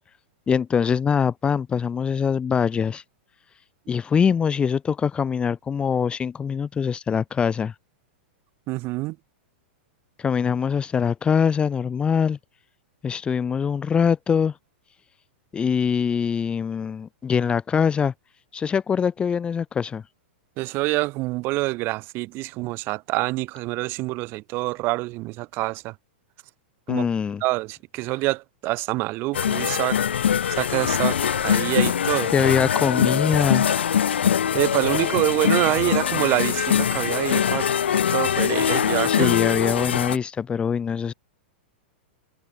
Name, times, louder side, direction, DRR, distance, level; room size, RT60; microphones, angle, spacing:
voice 1, 0.5-3.0 3.9-7.7 10.2-12.4 13.0-14.5 15.5-18.1 18.5-20.0 26.9-27.4 32.3-33.7 39.0-41.1, left 6 dB, 15° left, 1.5 m, -23 dB
voice 2, 8.7-9.2 20.6-25.9 26.9-27.1 27.4-30.0 30.5-32.3 34.5-37.7 38.1-39.3, right 21 dB, 40° right, 6.4 m, -26 dB
sound 1, 29.3-40.2, left 8 dB, 85° left, 4.0 m, -23 dB
hypercardioid pair, 130°, 6 cm